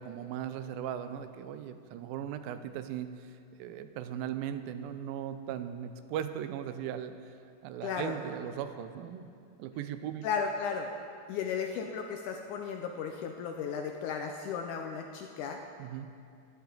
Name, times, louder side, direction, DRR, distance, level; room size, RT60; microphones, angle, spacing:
voice 1, 0.0-7.3 7.6-9.3 9.6-10.3 15.8-16.1, right 9 dB, 85° right, 10 dB, 2.4 m, -38 dB
voice 2, 7.8-8.2 10.2-10.9 11.3-15.6, left 6 dB, 80° left, 3 dB, 1.8 m, -35 dB
16.5 x 10.5 x 3.8 m, 2.4 s
omnidirectional pair, 4.0 m